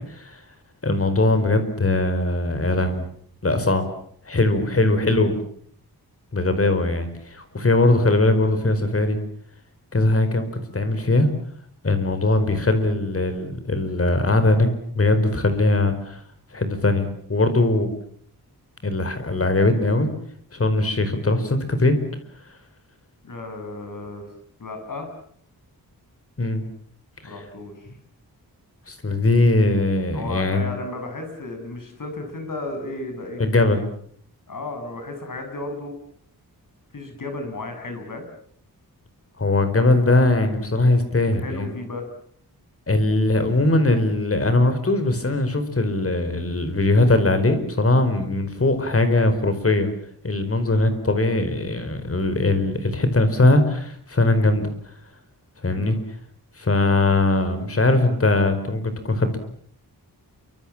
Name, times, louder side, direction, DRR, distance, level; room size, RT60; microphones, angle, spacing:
voice 1, 0.1-0.4 0.8-3.1 3.4-3.9 4.2-5.3 6.3-9.2 9.9-11.3 11.8-16.2 16.5-17.9 18.8-20.1 20.5-22.0 26.4-26.6 27.2-27.3 28.9-30.7 33.4-33.8 39.4-41.8 42.9-49.9 50.2-54.7 55.6-56.0 56.6-59.4, left 2 dB, 35° left, 9 dB, 4.8 m, -20 dB
voice 2, 23.2-24.3 24.6-25.1 27.2-27.9 30.1-33.4 34.5-36.0 36.9-38.3 41.1-42.1 55.7-56.1, left 2 dB, 55° left, 5 dB, 7.7 m, -34 dB
29.0 x 25.0 x 7.4 m, 0.63 s
wide cardioid pair, 150°, 37 cm